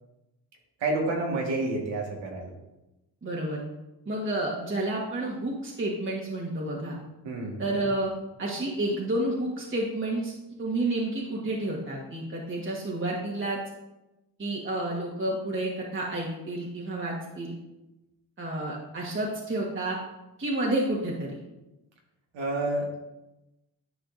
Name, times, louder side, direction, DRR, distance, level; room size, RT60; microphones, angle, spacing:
voice 1, 0.8-2.5 7.2-7.6 22.3-23.0, right 2 dB, 85° right, 0 dB, 1.6 m, -29 dB
voice 2, 3.2-3.6 4.0-7.0 7.6-8.1 8.4-10.3 10.6-13.6 14.4-17.5 18.4-20.0 20.4-21.4, right 1 dB, 30° right, -3 dB, 1.4 m, -30 dB
10.5 x 4.9 x 2.5 m, 0.96 s
cardioid pair, 70°, 43 cm